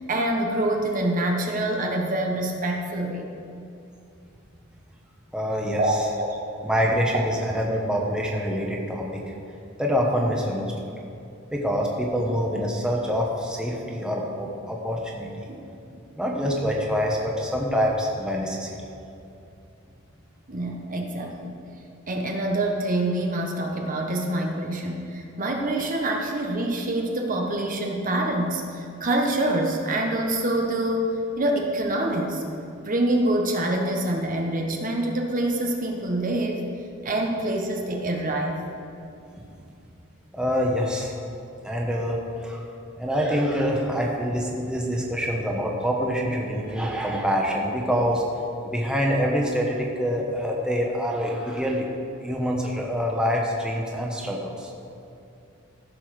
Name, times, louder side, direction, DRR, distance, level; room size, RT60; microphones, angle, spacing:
voice 1, 0.1-3.3 5.8-6.7 15.5-15.6 20.5-21.6 22.1-32.4 32.8-36.6 37.0-38.6, right 1 dB, 40° right, 1 dB, 1.1 m, -26 dB
voice 2, 5.3-5.8 6.6-9.2 9.8-10.9 11.5-15.4 16.2-18.8 39.4-39.5 40.3-41.1 41.6-42.7 43.0-48.2 48.6-51.9 52.2-54.7, equal, 5° right, -2 dB, 1.2 m, -26 dB
15.0 x 5.6 x 6.5 m, 2.6 s
head